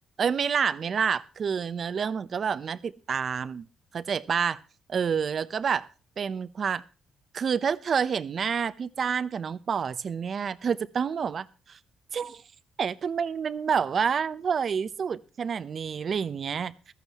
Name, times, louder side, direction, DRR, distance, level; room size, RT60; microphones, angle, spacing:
voice 1, 0.2-3.6 3.9-4.6 4.9-5.9 6.2-6.8 7.3-11.8 12.1-12.4 12.8-16.7, right 6 dB, 50° right, 0.8 m, -28 dB
15.0 x 13.5 x 3.0 m
cardioid pair, 90°, 0 cm